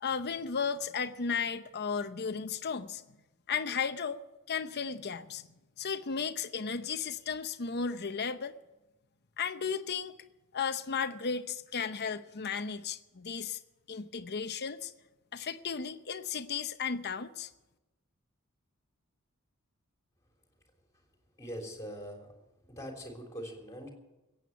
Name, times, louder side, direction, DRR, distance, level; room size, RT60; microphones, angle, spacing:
voice 1, 0.0-3.0 3.5-4.2 4.5-5.5 5.8-8.6 9.4-10.1 10.5-13.6 13.9-14.9 15.3-17.5, left 6 dB, 50° left, 9 dB, 0.8 m, -34 dB
voice 2, 21.4-22.4 22.7-23.9, equal, 15° left, 1 dB, 3.5 m, -42 dB
15.5 x 8.8 x 10.0 m, 1.0 s
head